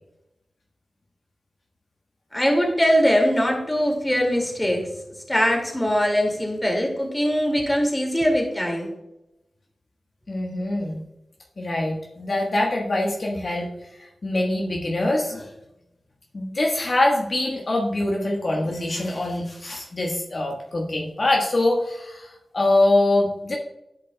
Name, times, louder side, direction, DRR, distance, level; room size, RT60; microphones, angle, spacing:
voice 1, 2.3-4.9 5.3-8.9, equal, 15° left, 1 dB, 2.1 m, -21 dB
voice 2, 10.3-11.0 11.6-13.7 14.2-15.5 16.3-23.5, left 2 dB, 60° left, -1 dB, 1.2 m, -24 dB
10.5 x 5.2 x 2.2 m, 0.90 s
cardioid pair, 40°, 0 cm